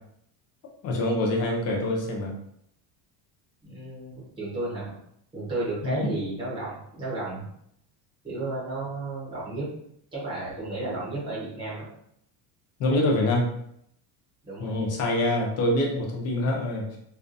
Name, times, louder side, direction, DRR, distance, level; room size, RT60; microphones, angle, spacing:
voice 1, 0.8-2.3 5.8-6.1 12.8-13.5 14.6-17.0, left 1 dB, 35° left, -1 dB, 0.4 m, -25 dB
voice 2, 3.6-4.9 5.3-7.5 8.2-9.7 10.1-11.9 14.4-14.9, right 2 dB, 10° right, -9 dB, 0.9 m, -33 dB
2.4 x 2.3 x 2.5 m, 0.72 s
cardioid pair, 180°, 46 cm